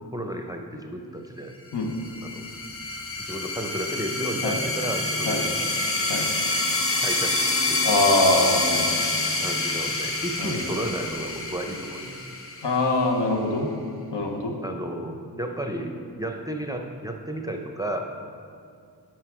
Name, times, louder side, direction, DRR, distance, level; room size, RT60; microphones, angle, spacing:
voice 1, 0.1-1.5 2.2-2.5 3.2-5.6 7.0-7.8 9.4-12.2 14.6-15.9 16.2-18.0, right 1 dB, 10° right, 3 dB, 0.5 m, -33 dB
sound 1, 1.9-13.2, left 2 dB, 30° left, 0.7 m, -27 dB
voice 2, 7.8-9.1 10.4-10.6 12.6-13.7 14.1-14.5, left 2 dB, 80° left, 2 dB, 1.1 m, -23 dB
9.6 x 4.9 x 4.7 m, 2.3 s
wide cardioid pair, 100°, 41 cm